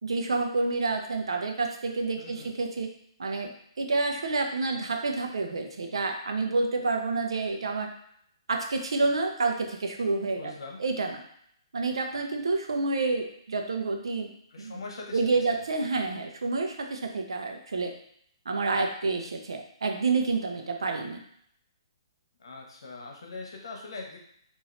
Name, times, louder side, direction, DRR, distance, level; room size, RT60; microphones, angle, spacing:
voice 1, 0.0-2.9 3.2-3.5 3.8-7.9 8.5-10.5 10.8-11.2 11.7-14.3 14.6-14.8 15.1-17.9 18.5-21.2, right 3 dB, 70° right, 3 dB, 0.7 m, -28 dB
voice 2, 2.2-2.5 10.4-10.8 14.5-15.6 22.4-24.2, left 3 dB, 65° left, 1 dB, 1.1 m, -42 dB
4.8 x 2.7 x 3.2 m, 0.68 s
figure-of-eight pair, 125°, 3 cm